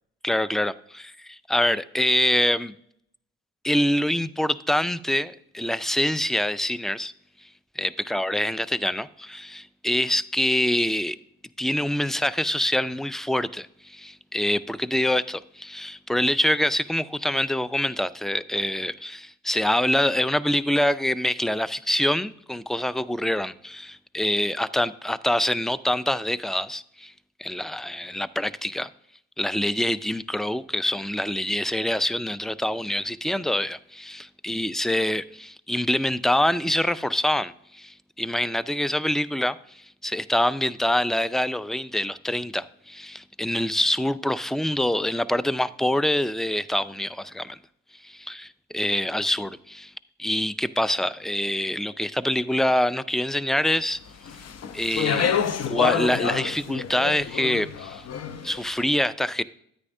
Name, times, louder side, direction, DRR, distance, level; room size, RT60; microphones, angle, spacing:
voice 1, 0.2-2.7 3.6-7.1 7.8-11.2 11.6-27.1 27.4-28.9 29.4-47.6 48.0-49.9 50.2-54.0 54.7-55.3 55.7-58.0 58.4-59.4, left 1 dB, ahead, 0.3 m, -25 dB
Speech, 54.3-58.6, left 7 dB, 50° left, 0.8 m, -28 dB
9.6 x 9.4 x 2.6 m
supercardioid pair, 55°, 32 cm